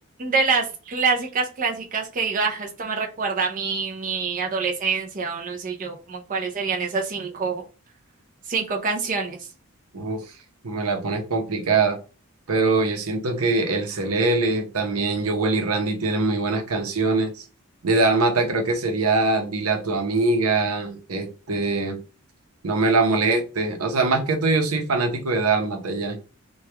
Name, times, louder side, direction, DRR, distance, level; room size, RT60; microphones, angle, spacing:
voice 1, 0.2-7.6 8.5-9.5, right 4 dB, 40° right, 1 dB, 0.5 m, -26 dB
voice 2, 10.6-12.0 12.5-17.4 17.8-22.0 22.6-26.2, right 3 dB, 85° right, 4 dB, 0.8 m, -23 dB
3.1 x 2.3 x 3.2 m, 0.33 s
head